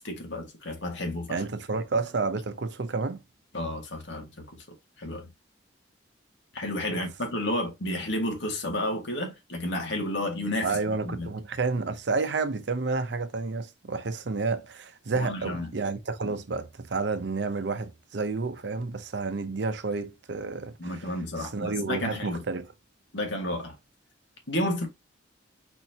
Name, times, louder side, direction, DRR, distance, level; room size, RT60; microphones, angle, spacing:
voice 1, 0.0-1.4 3.5-4.6 5.0-5.3 6.5-11.3 15.1-15.7 20.8-22.4 23.1-23.7 24.5-24.9, left 1 dB, 70° left, 1.6 m, -31 dB
voice 2, 1.3-3.2 6.9-7.0 10.6-21.0 21.4-22.7, right 4 dB, 65° right, 0.6 m, -30 dB
4.4 x 4.3 x 2.8 m
head